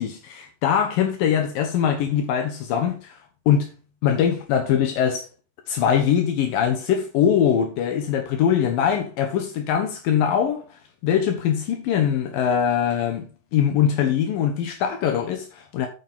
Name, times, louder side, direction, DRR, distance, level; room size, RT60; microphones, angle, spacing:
voice 1, 0.0-3.2 3.5-3.7 4.0-5.3 5.7-10.6 11.0-15.9, left 8 dB, 80° left, 3.0 m, -22 dB
9.4 x 8.5 x 3.8 m
omnidirectional pair, 4.0 m